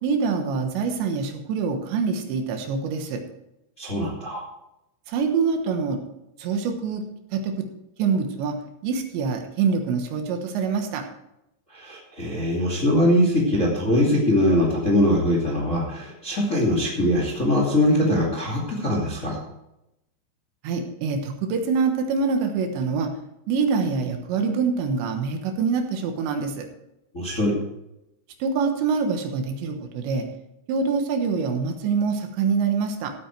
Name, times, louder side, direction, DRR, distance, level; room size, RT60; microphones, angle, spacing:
voice 1, 0.0-3.2 5.1-6.0 6.4-7.0 7.3-7.7 8.0-8.6 8.8-11.0 20.6-23.1 23.5-26.7 28.4-30.3 30.7-33.1, right 5 dB, 75° right, 5 dB, 3.4 m, -25 dB
voice 2, 3.8-4.4 11.7-19.4 27.1-27.6, left 1 dB, 25° left, -2 dB, 2.0 m, -22 dB
15.5 x 8.7 x 4.6 m, 0.85 s
omnidirectional pair, 5.4 m